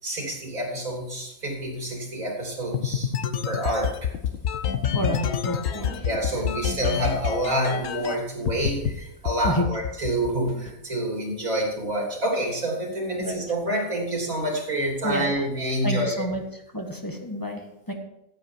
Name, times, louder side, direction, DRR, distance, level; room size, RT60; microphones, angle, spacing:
voice 1, 0.0-3.1 3.5-4.1 5.7-16.3, right 1 dB, 90° right, -1 dB, 3.9 m, -28 dB
sound 1, 2.7-8.1 8.5-8.9 9.3-10.7, left 8 dB, 75° left, 1.3 m, -27 dB
voice 2, 4.9-6.1 9.4-9.7 13.2-13.4 15.0-15.4 15.8-17.9, equal, 15° left, 2 dB, 1.7 m, -29 dB
15.0 x 8.3 x 4.7 m, 0.85 s
omnidirectional pair, 1.4 m